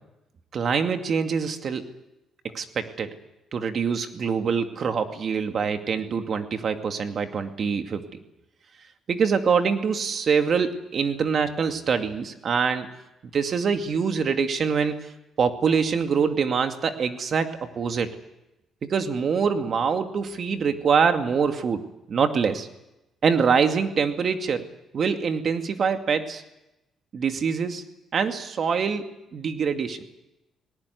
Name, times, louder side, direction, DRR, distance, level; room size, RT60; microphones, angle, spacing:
voice 1, 0.5-1.9 2.5-3.1 3.5-8.0 9.1-12.9 13.3-15.1 15.4-18.1 18.8-22.7 23.2-24.6 24.9-26.4 27.1-27.8 28.1-30.0, right 6 dB, 55° right, 6 dB, 2.3 m, -24 dB
19.5 x 18.5 x 9.6 m, 0.94 s
cardioid pair, 90°, 0 cm